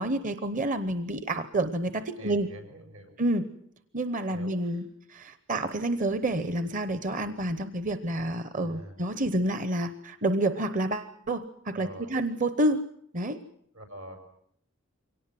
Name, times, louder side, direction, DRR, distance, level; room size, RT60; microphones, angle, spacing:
voice 1, 0.0-2.5 3.2-3.5 3.9-12.8 13.1-13.4, right 1 dB, 40° right, 12 dB, 0.9 m, -29 dB
voice 2, 2.2-3.1 4.3-4.8 8.5-9.0 11.7-12.1 13.7-14.2, equal, 85° right, 6 dB, 6.2 m, -45 dB
24.0 x 18.0 x 7.7 m, 0.69 s
head